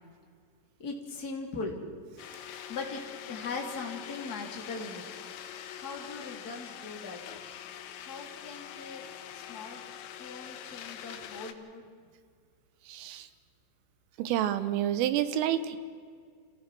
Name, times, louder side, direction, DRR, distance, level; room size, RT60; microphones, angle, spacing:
voice 1, 0.8-1.8 2.7-5.0 5.7-7.2 8.0-9.0 9.3-9.8 10.2-11.8, left 4 dB, 30° left, 0 dB, 1.8 m, -40 dB
sound 1, 2.2-11.5, left 10 dB, 90° left, 3.8 m, -44 dB
voice 2, 12.9-13.3 14.2-15.8, right 11 dB, 90° right, 12 dB, 3.6 m, -29 dB
27.5 x 16.5 x 6.1 m, 2.1 s
omnidirectional pair, 5.7 m